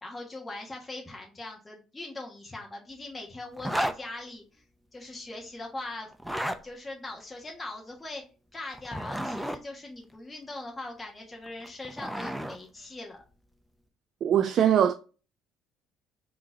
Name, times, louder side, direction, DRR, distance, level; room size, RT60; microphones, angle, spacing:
voice 1, 0.0-4.6 4.9-6.1 6.6-8.2 8.5-13.2, left 2 dB, 20° left, 1.3 m, -41 dB
Zipper (clothing), 3.6-4.0 6.1-6.6 8.7-9.6 11.5-12.6, equal, ahead, 0.5 m, -32 dB
voice 2, 14.2-14.9, right 9 dB, 55° right, 0.3 m, -21 dB
3.7 x 2.9 x 4.6 m
supercardioid pair, 80°, 0 cm